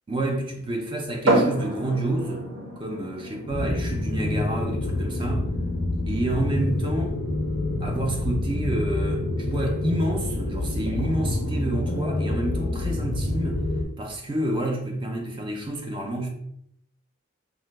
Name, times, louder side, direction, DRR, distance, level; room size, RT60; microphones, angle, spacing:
voice 1, 0.1-2.5 2.8-5.5 6.1-7.2 7.8-13.6 14.0-16.3, right 1 dB, 25° right, 0.3 m, -29 dB
sound 1, 1.2-14.7, right 2 dB, 65° right, 0.6 m, -33 dB
sound 2, 3.5-13.8, left 2 dB, 50° left, 0.4 m, -27 dB
2.8 x 2.1 x 3.1 m
head